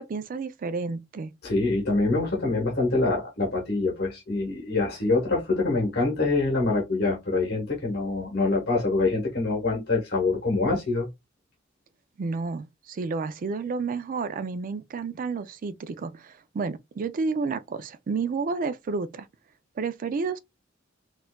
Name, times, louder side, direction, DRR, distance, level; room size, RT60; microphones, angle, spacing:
voice 1, 0.0-1.3 12.2-19.3 19.8-20.4, right 4 dB, 45° right, 0.3 m, -31 dB
voice 2, 1.4-11.1, left 3 dB, 55° left, 1.0 m, -25 dB
4.2 x 2.4 x 2.2 m
head